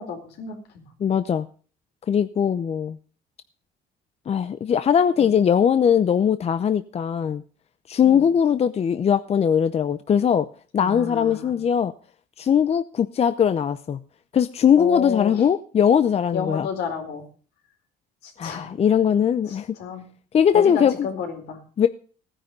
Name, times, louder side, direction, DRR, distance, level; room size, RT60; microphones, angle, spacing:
voice 1, 0.0-0.9 5.2-5.3 8.0-8.2 10.8-11.5 14.8-15.5 16.3-17.2 18.2-18.6 19.5-20.1 20.5-21.6, left 6 dB, 75° left, 4.2 m, -31 dB
voice 2, 1.0-1.5 2.1-3.0 4.3-7.4 7.9-10.5 10.7-11.9 12.4-14.0 14.3-16.7 18.4-19.7 20.3-21.1 21.8-21.9, left 8 dB, 40° left, 0.7 m, -20 dB
16.0 x 10.0 x 5.3 m
cardioid pair, 110°, 17 cm